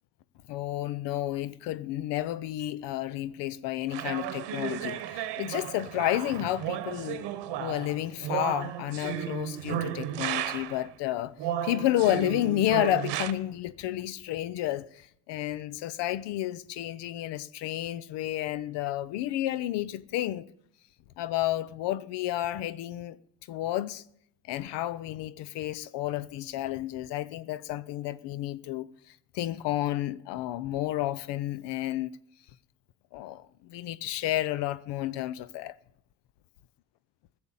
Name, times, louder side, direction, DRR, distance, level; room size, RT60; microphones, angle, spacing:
voice 1, 0.5-7.2 7.6-11.3 11.6-20.4 21.2-23.2 23.5-24.0 24.5-28.9 29.3-32.2 33.1-35.8, left 14 dB, 85° left, 0.7 m, -31 dB
sound 1, 3.9-10.9 11.4-13.3, right 11 dB, 80° right, 1.0 m, -34 dB
16.5 x 7.0 x 7.1 m
cardioid pair, 100°, 41 cm